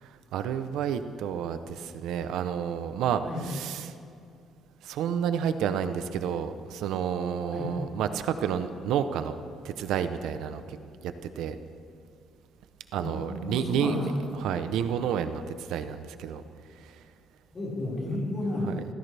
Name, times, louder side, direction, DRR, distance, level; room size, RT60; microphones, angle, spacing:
voice 1, 0.0-3.9 4.8-9.4 9.6-10.8 11.0-11.6 12.9-14.0 14.4-16.4 16.8-16.9 18.7-18.8, right 8 dB, 75° right, 10 dB, 0.7 m, -30 dB
voice 2, 13.0-14.1 17.5-18.7, left 1 dB, 20° left, -6 dB, 5.1 m, -32 dB
27.5 x 15.0 x 3.4 m, 2.4 s
cardioid pair, 180°, 0 cm